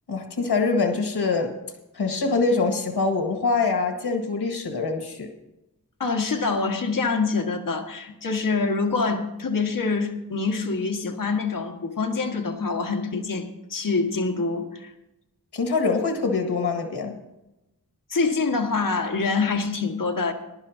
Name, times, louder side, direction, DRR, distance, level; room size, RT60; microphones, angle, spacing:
voice 1, 0.1-1.5 1.9-5.3 15.5-17.2, left 4 dB, 80° left, 3 dB, 1.8 m, -24 dB
voice 2, 6.0-14.9 18.1-20.3, left 4 dB, 55° left, 2 dB, 1.6 m, -25 dB
21.5 x 11.5 x 2.7 m, 0.93 s
wide cardioid pair, 70°, 39 cm